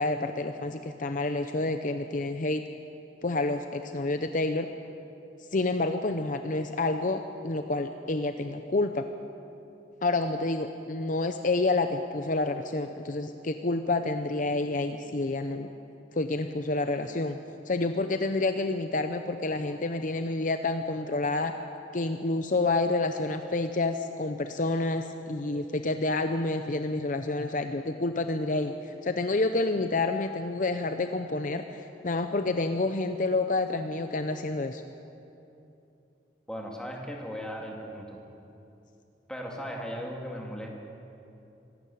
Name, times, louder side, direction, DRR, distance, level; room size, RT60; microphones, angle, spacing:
voice 1, 0.0-2.6 3.2-4.7 5.5-9.0 10.0-15.7 16.1-17.4 17.7-21.5 21.9-34.8, left 2 dB, 45° left, 7 dB, 0.7 m, -29 dB
voice 2, 36.5-38.2 39.3-40.7, equal, 5° left, -1 dB, 2.5 m, -37 dB
24.5 x 12.5 x 8.7 m, 2.8 s
head